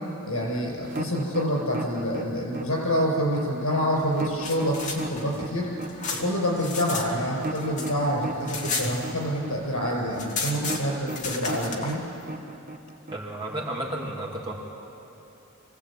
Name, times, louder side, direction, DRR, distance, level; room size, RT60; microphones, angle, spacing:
voice 1, 0.2-5.7 6.2-12.1, equal, 90° left, 0 dB, 6.0 m, -27 dB
sound 1, 0.8-13.8, right 2 dB, 40° right, 1.0 m, -36 dB
sound 2, 4.2-7.1 7.4-9.5 9.8-9.9 10.1-11.9, left 4 dB, 35° left, 2.0 m, -33 dB
voice 2, 13.1-14.5, right 1 dB, 20° right, -2 dB, 2.8 m, -32 dB
24.5 x 16.5 x 8.8 m, 2.9 s
head